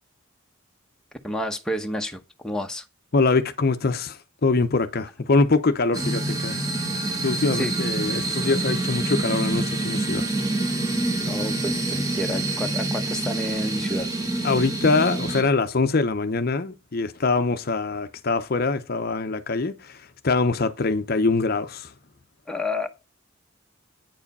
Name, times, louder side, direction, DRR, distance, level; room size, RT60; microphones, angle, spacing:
voice 1, 1.2-2.8 7.5-7.8 11.2-14.1 22.5-22.9, left 1 dB, 5° left, 0.8 m, -30 dB
voice 2, 3.1-6.6 7.2-10.3 14.4-21.9, left 3 dB, 45° left, 0.6 m, -23 dB
sound 1, 5.9-15.4, right 2 dB, 15° right, 1.4 m, -26 dB
9.2 x 4.8 x 5.3 m
head